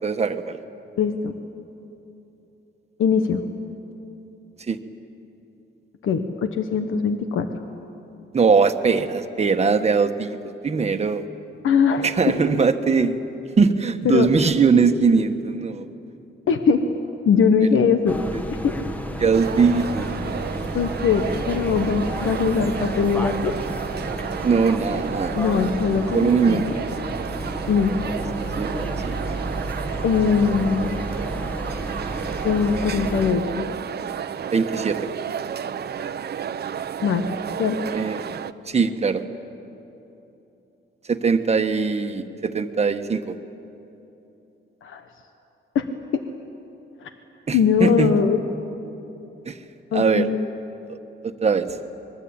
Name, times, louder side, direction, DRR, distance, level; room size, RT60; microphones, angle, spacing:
voice 1, 0.0-0.6 4.7-4.8 8.3-11.2 12.0-13.2 13.6-15.9 18.3-18.4 19.2-20.1 24.4-25.4 26.1-26.7 28.6-28.7 29.0-29.4 34.5-35.1 37.9-38.2 38.7-39.2 41.1-43.3 47.5-48.2 49.5-49.6 49.9-50.3 50.9-51.0 51.4-51.8, right 5 dB, 35° right, 7 dB, 1.3 m, -21 dB
voice 2, 1.0-1.4 3.0-3.4 6.0-7.5 11.6-12.3 14.0-14.3 16.5-16.9 17.3-18.2 18.6-18.7 20.7-23.5 25.3-26.7 27.7-27.9 30.0-31.0 32.4-33.7 37.0-37.3 37.6-37.8 44.8-45.0 45.7-45.9 46.1-46.2 47.0-47.1 47.5-48.4 49.9-50.4, left 6 dB, 90° left, 7 dB, 1.3 m, -21 dB
sound 1, 18.1-33.3, right 1 dB, 10° left, 1.5 m, -31 dB
sound 2, 19.3-38.5, right 8 dB, 55° right, 0.7 m, -32 dB
26.0 x 22.0 x 8.8 m, 3.0 s
wide cardioid pair, 135°, 20 cm